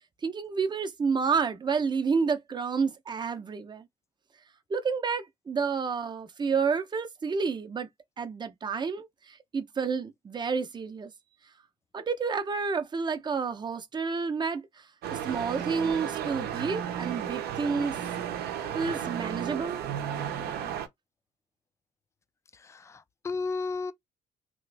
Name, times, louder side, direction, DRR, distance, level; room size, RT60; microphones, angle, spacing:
voice 1, 0.2-3.9 4.7-7.9 8.2-11.1 11.9-18.0 18.7-19.8, right 5 dB, 25° right, 0.6 m, -30 dB
sound 1, 15.0-20.9, right 9 dB, 70° right, 0.7 m, -33 dB
voice 2, 22.7-23.9, left 4 dB, 15° left, 0.3 m, -33 dB
2.9 x 2.4 x 3.3 m
cardioid pair, 110°, 17 cm